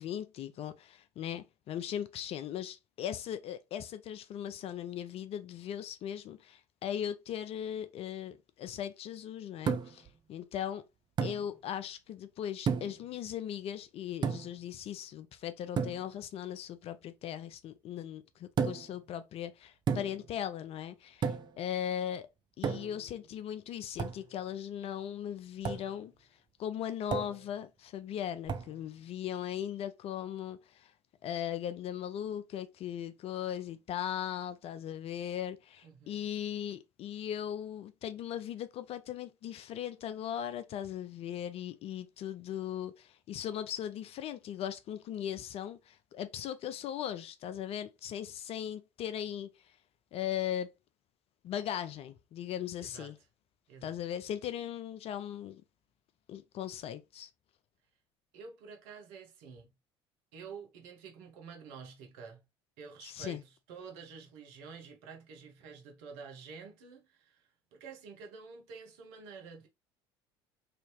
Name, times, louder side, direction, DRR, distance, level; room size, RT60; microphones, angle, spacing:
voice 1, 0.0-10.8 11.2-22.3 22.6-30.9 31.2-49.7 50.1-50.7 51.4-53.2 53.8-55.6 56.3-57.3 63.0-63.4, left 10 dB, 45° left, 0.4 m, -38 dB
sound 1, 9.7-10.1 11.2-11.4 12.7-13.0 14.2-14.6 15.8-16.0 18.6-19.0 19.9-20.3 21.2-21.6 22.6-23.0 24.0-24.2 25.6-25.9 27.1-27.4 28.5-28.7, right 6 dB, 35° right, 0.5 m, -33 dB
voice 2, 35.8-36.2 52.8-53.1 53.7-54.0 58.3-59.7 60.3-62.4 62.8-69.7, right 5 dB, 65° right, 0.8 m, -49 dB
3.3 x 2.7 x 2.9 m
hypercardioid pair, 65°, 14 cm